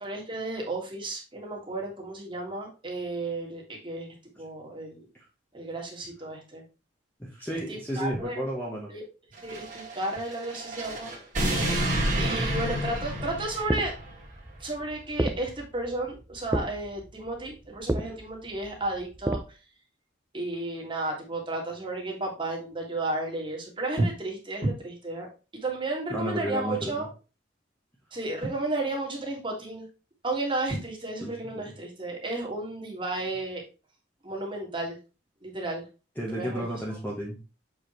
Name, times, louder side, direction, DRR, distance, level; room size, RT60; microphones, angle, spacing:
voice 1, 0.0-4.1 4.4-5.0 5.5-6.6 7.7-8.4 8.9-9.0 9.4-11.1 12.2-13.9 14.6-19.6 20.3-25.3 25.5-27.1 28.1-29.9 30.2-33.6 34.2-35.0 35.4-35.9 36.3-36.7, right 2 dB, 25° right, 0 dB, 1.9 m, -33 dB
voice 2, 7.2-8.9 12.1-12.5 18.0-18.1 26.1-27.1 31.2-31.7 36.2-37.4, equal, 10° left, -4 dB, 1.1 m, -33 dB
sound 1, 9.4-14.1, right 1 dB, 45° right, 2.1 m, -30 dB
sound 2, 13.5-19.5, right 1 dB, 10° right, 0.4 m, -33 dB
7.3 x 4.9 x 3.1 m, 0.32 s
head